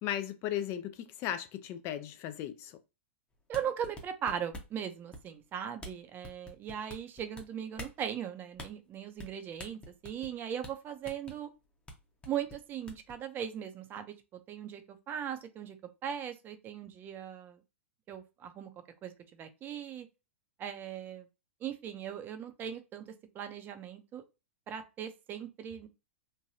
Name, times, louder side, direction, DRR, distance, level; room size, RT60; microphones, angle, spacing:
voice 1, 0.0-2.7, left 11 dB, 40° left, 0.4 m, -36 dB
sound 1, 3.4-4.8 5.1-5.4 5.8-5.9 6.2-7.4 7.7-8.0 8.5-8.7 9.2-9.3 9.6-10.3 10.6-10.7 11.0-11.3 11.9-12.0 12.2-13.1, left 1 dB, 15° left, 0.8 m, -45 dB
voice 2, 3.5-11.5 12.3-14.1 14.5-15.8 16.0-17.6 18.1-18.7 19.0-19.1 19.4-20.1 20.6-21.3 21.6-23.1 23.3-24.2 24.7-25.9, right 9 dB, 30° right, 0.5 m, -39 dB
3.2 x 2.2 x 2.6 m
hypercardioid pair, 110°, 7 cm